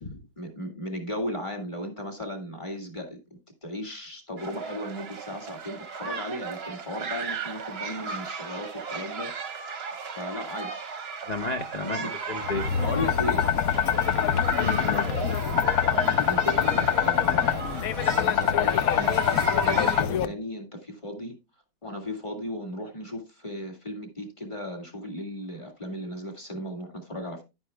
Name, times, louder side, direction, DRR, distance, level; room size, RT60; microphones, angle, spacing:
voice 1, 0.4-9.3 10.2-10.8 11.8-12.1 12.8-13.5 15.9-21.4 21.8-27.4, left 1 dB, 15° left, 1.9 m, -36 dB
sound 1, 4.4-20.0, right 5 dB, 45° right, 0.9 m, -36 dB
voice 2, 11.3-12.7 14.6-15.1, left 3 dB, 85° left, 0.3 m, -32 dB
sound 2, 12.4-20.2, left 9 dB, 65° left, 0.9 m, -24 dB
10.5 x 9.8 x 2.2 m
omnidirectional pair, 1.9 m